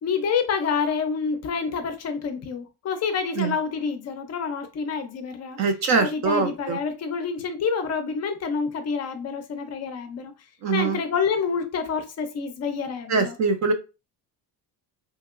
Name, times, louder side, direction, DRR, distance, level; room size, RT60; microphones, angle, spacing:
voice 1, 0.0-5.6 6.0-10.3 10.7-13.3, left 5 dB, 40° left, 0.4 m, -28 dB
voice 2, 5.6-6.8 10.6-11.0 13.1-13.7, right 4 dB, 45° right, 0.4 m, -23 dB
2.8 x 2.8 x 2.3 m
cardioid pair, 150°, 41 cm